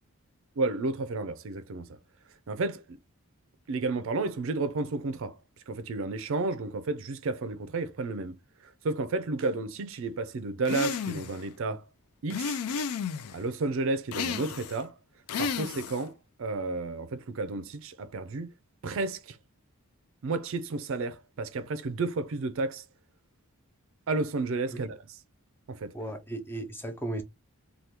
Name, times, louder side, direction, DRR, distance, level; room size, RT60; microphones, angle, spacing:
voice 1, 0.6-1.9 2.5-3.0 3.7-5.4 5.7-8.4 8.8-11.9 12.2-12.6 13.3-14.9 15.4-18.5 18.8-19.4 20.2-22.8 24.1-25.2 25.7-25.9, right 3 dB, 60° right, 0.4 m, -32 dB
sound 1, 10.7-11.4 12.3-13.4 14.1-14.8 15.3-16.1, left 6 dB, 85° left, 0.4 m, -32 dB
voice 2, 25.9-27.2, right 1 dB, 10° left, 0.4 m, -35 dB
2.9 x 2.2 x 3.4 m
head